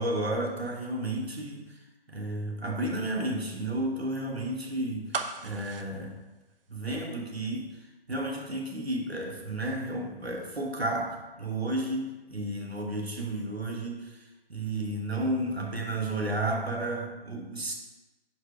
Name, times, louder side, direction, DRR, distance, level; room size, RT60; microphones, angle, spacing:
voice 1, 0.0-1.8 2.1-6.2 6.7-7.8 8.1-14.2 14.5-17.7, right 1 dB, 85° right, 1 dB, 1.3 m, -32 dB
sound 1, 5.1-7.1 7.4-7.5, right 4 dB, 65° right, 0.6 m, -37 dB
5.2 x 4.7 x 4.5 m, 1.1 s
figure-of-eight pair, 145°, 30 cm